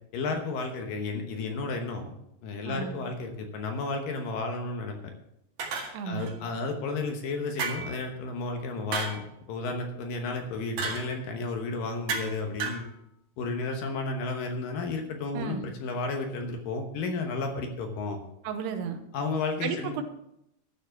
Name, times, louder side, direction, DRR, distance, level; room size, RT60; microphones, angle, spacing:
voice 1, 0.1-2.1 2.4-5.1 6.0-12.9 13.4-18.2 19.1-20.0, left 3 dB, 70° left, 4 dB, 2.5 m, -32 dB
voice 2, 2.7-3.0 5.9-6.3 15.3-15.6 18.4-19.0 19.6-20.0, right 7 dB, 80° right, 7 dB, 3.0 m, -33 dB
sound 1, 5.6-6.3 7.6-8.0 8.9-9.2 10.8-11.1 12.1-12.3 12.6-12.9, right 4 dB, 60° right, 3.3 m, -32 dB
12.0 x 7.2 x 5.9 m, 0.82 s
omnidirectional pair, 4.7 m